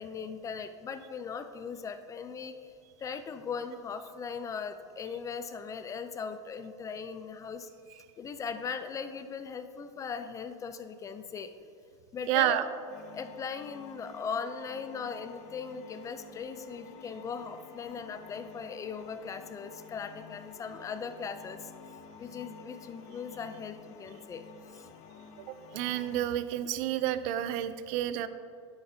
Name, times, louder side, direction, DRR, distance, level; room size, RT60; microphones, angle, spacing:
voice 1, 0.0-2.7 3.0-7.7 8.2-11.7 12.1-12.6 13.1-21.7 22.2-24.9, left 6 dB, 20° left, 10 dB, 0.3 m, -39 dB
voice 2, 12.3-12.7 25.5-28.3, right 12 dB, 50° right, 13 dB, 0.4 m, -30 dB
sound 1, 12.9-26.3, left 6 dB, 50° left, 0.7 m, -51 dB
9.5 x 8.3 x 2.7 m, 2.4 s
supercardioid pair, 125°, 16 cm